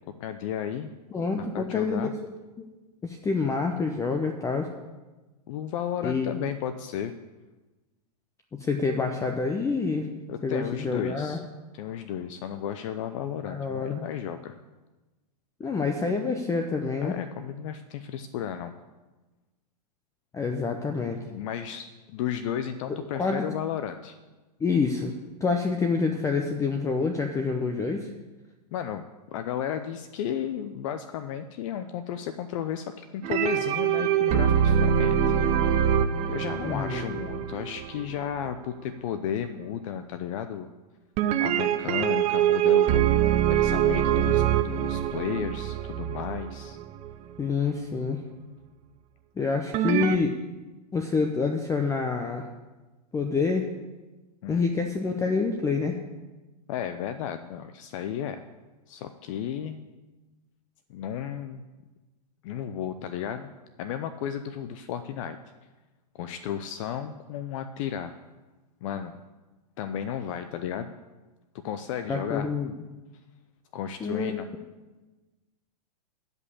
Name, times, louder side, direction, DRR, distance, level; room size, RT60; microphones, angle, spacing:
voice 1, 0.2-0.9 1.4-2.1 5.5-7.1 10.3-11.5 11.7-14.6 17.0-18.7 21.3-24.2 28.7-35.4 36.3-40.7 41.4-43.2 43.5-46.8 54.4-54.7 56.7-58.4 58.9-59.9 60.9-61.6 62.4-63.5 63.8-65.4 66.1-68.2 68.8-69.2 69.8-70.9 71.6-72.5 73.7-74.5, left 9 dB, 50° left, 10 dB, 0.6 m, -33 dB
voice 2, 1.1-2.1 2.6-2.7 3.0-4.7 6.0-6.5 8.5-10.1 10.4-11.4 13.4-14.0 15.6-17.1 20.3-21.2 22.9-23.4 24.6-25.1 25.4-28.1 36.6-37.2 47.4-48.2 49.4-50.4 50.9-52.5 53.1-53.7 54.5-56.0 72.1-72.7 74.0-74.5, left 4 dB, 15° left, 5 dB, 0.7 m, -27 dB
sound 1, 33.2-38.5 41.2-47.1 49.7-50.2, right 10 dB, 30° right, 0.6 m, -24 dB
11.0 x 5.4 x 8.4 m, 1.2 s
hypercardioid pair, 105°, 21 cm